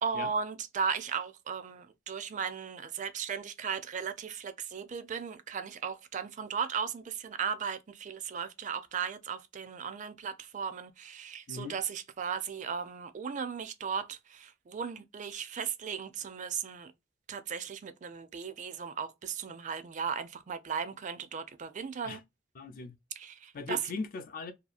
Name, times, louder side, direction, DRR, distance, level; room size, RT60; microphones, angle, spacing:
voice 1, 0.0-16.9 17.3-22.2 23.2-23.8, right 6 dB, 40° right, 0.4 m, -36 dB
voice 2, 22.6-23.0 23.5-24.5, left 4 dB, 50° left, 0.5 m, -39 dB
2.8 x 2.4 x 2.3 m
head